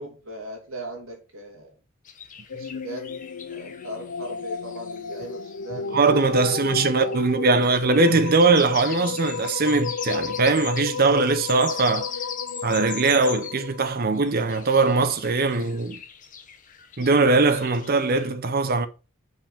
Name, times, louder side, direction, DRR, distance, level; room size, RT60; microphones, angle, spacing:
voice 1, 0.0-1.7 2.5-3.1 3.5-6.0 6.4-7.2 7.6-7.7, right 1 dB, 85° right, 2.5 m, -38 dB
sound 1, 2.0-13.7 14.1-18.3, left 7 dB, 40° left, 1.1 m, -40 dB
sound 2, 2.5-13.9, left 5 dB, 70° left, 0.5 m, -32 dB
voice 2, 5.9-12.1 12.6-16.0 17.0-18.9, right 3 dB, 45° right, 0.8 m, -21 dB
5.5 x 5.3 x 6.7 m
head